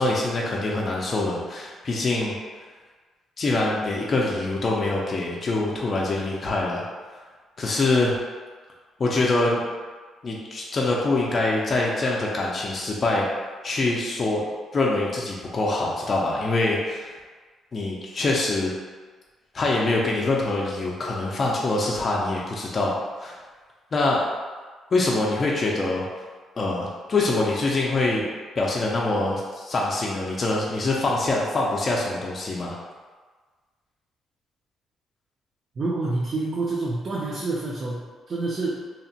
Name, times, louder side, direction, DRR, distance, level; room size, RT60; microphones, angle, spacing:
voice 1, 0.0-2.4 3.4-6.9 7.6-8.1 9.0-9.6 10.2-13.3 13.6-14.4 14.7-17.1 17.7-18.7 19.5-22.9 23.2-23.3 23.9-24.2 24.9-26.1 26.6-28.3 28.6-32.8, left 2 dB, 35° left, -3 dB, 0.4 m, -24 dB
voice 2, 35.8-38.8, right 2 dB, 40° right, -6 dB, 0.4 m, -28 dB
2.7 x 2.1 x 2.7 m, 1.4 s
cardioid pair, 110°, 0 cm